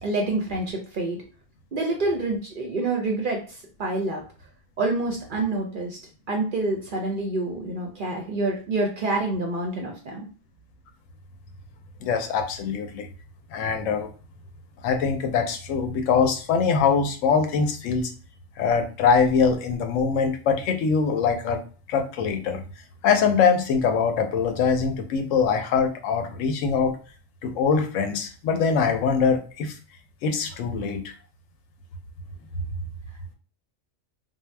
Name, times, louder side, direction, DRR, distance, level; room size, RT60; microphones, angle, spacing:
voice 1, 0.0-1.2 1.7-4.2 4.8-6.0 6.3-10.3, right 2 dB, 55° right, 1 dB, 0.6 m, -27 dB
voice 2, 12.0-13.1 13.5-14.1 14.8-18.1 18.6-21.6 21.9-22.6 23.0-26.9 27.4-29.8 30.2-31.0, left 5 dB, 85° left, 5 dB, 0.9 m, -23 dB
2.6 x 2.0 x 3.2 m, 0.38 s
omnidirectional pair, 1.3 m